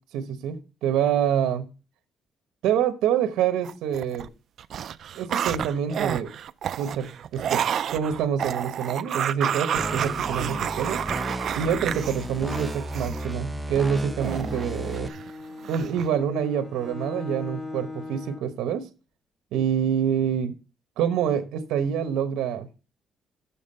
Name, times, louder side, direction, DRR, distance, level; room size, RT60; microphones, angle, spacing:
voice 1, 0.1-1.7 2.6-4.3 5.2-6.3 6.8-7.1 7.3-7.6 7.9-11.0 11.5-15.1 15.7-18.8 19.5-20.5 21.0-22.7, right 8 dB, 90° right, 9 dB, 1.0 m, -26 dB
sound 1, 3.6-4.3 4.6-13.3 14.2-15.3 15.6-16.1, right 9 dB, 55° right, 0.4 m, -30 dB
sound 2, 9.8-15.1, equal, 5° right, 0.7 m, -34 dB
Bowed string instrument, 13.8-18.6, left 2 dB, 20° left, 1.2 m, -39 dB
7.2 x 6.7 x 5.4 m, 0.32 s
cardioid pair, 125°, 0 cm